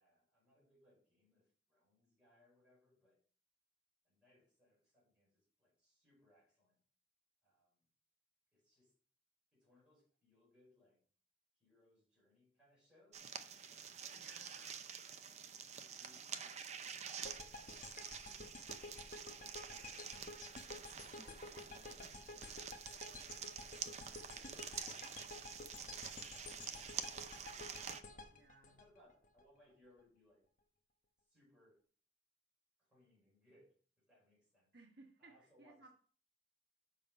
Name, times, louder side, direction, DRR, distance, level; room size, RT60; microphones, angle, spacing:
voice 1, 0.0-3.2 4.0-6.8 7.4-7.8 8.5-9.0 9.5-11.0 11.5-13.2 14.0-14.7 15.7-17.9 19.7-23.1 23.9-27.3 28.0-30.5 31.2-31.8 32.8-34.7 35.2-35.8, left 1 dB, 5° right, -6 dB, 5.0 m, -72 dB
sound 1, 13.1-28.0, right 7 dB, 40° right, 0.6 m, -48 dB
voice 2, 14.1-14.8 20.3-20.5 28.3-28.8 34.7-35.9, right 3 dB, 60° right, 0 dB, 1.5 m, -62 dB
sound 2, 17.2-29.4, left 3 dB, 45° left, 1.0 m, -52 dB
7.1 x 5.5 x 5.4 m, 0.43 s
head